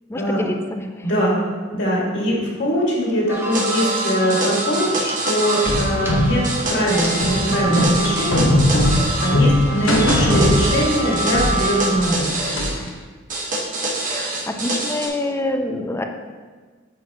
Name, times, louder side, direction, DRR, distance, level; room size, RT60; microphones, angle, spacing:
voice 1, 0.1-1.1 14.1-16.0, left 1 dB, 15° left, 4 dB, 0.6 m, -26 dB
voice 2, 1.0-1.4 1.7-8.5 9.2-12.4, equal, 65° left, -5 dB, 2.4 m, -21 dB
sound 1, 3.3-12.0, right 3 dB, 15° right, 1.1 m, -28 dB
sound 2, 3.5-5.9 6.4-9.3 9.9-12.7 13.3-15.1, right 2 dB, 45° right, 1.5 m, -26 dB
sound 3, 5.7-11.1 11.3-12.9, left 1 dB, 80° left, 1.3 m, -19 dB
9.2 x 7.0 x 3.0 m, 1.4 s
head